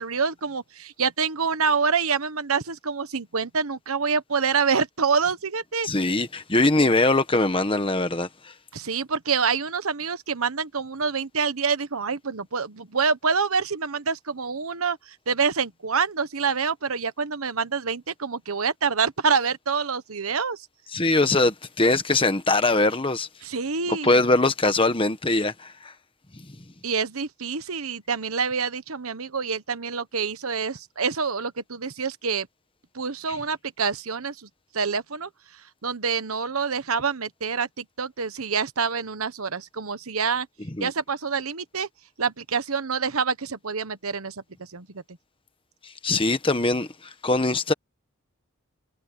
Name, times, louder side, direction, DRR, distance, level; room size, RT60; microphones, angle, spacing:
voice 1, 0.0-5.9 8.7-20.7 23.4-24.2 26.8-32.5 32.9-34.5 34.7-35.3 35.8-40.5 40.8-41.9 42.2-45.0, right 5 dB, 80° right, 1.2 m, -26 dB
voice 2, 5.8-8.5 20.9-23.3 23.9-25.9 40.8-40.9 45.8-47.7, left 2 dB, 25° left, 1.3 m, -22 dB
head